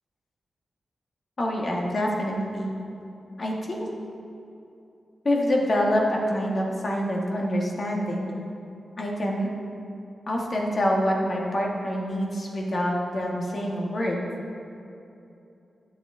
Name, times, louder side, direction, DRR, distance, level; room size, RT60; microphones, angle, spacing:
voice 1, 1.4-2.7 3.4-3.9 5.2-8.3 9.0-9.5 10.3-14.2, equal, 45° left, -1 dB, 1.3 m, -26 dB
11.0 x 6.8 x 3.6 m, 2.7 s
wide cardioid pair, 120°, 0 cm